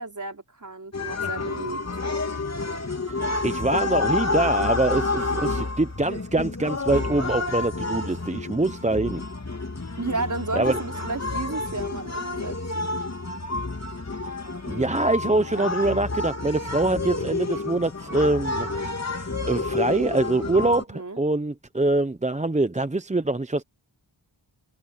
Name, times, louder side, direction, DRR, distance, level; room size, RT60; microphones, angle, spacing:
voice 1, 0.0-1.8 10.0-13.0 20.9-21.2, right 3 dB, 40° right, 4.6 m, -33 dB
sound 1, 0.9-20.8, left 3 dB, 35° left, 3.6 m, -29 dB
voice 2, 3.1-9.2 10.5-10.8 14.7-18.7 19.2-23.6, right 2 dB, 15° right, 0.8 m, -24 dB
cardioid pair, 65°, 48 cm